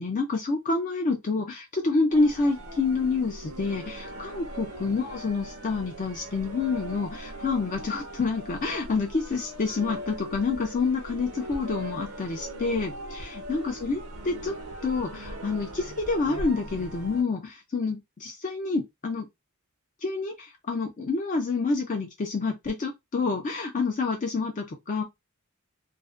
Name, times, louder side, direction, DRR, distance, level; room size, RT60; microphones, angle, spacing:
voice 1, 0.0-14.5 14.8-19.3 20.0-25.0, left 4 dB, 35° left, 0.4 m, -28 dB
sound 1, 2.1-17.2, right 1 dB, 80° right, 0.7 m, -40 dB
2.4 x 2.1 x 2.4 m
head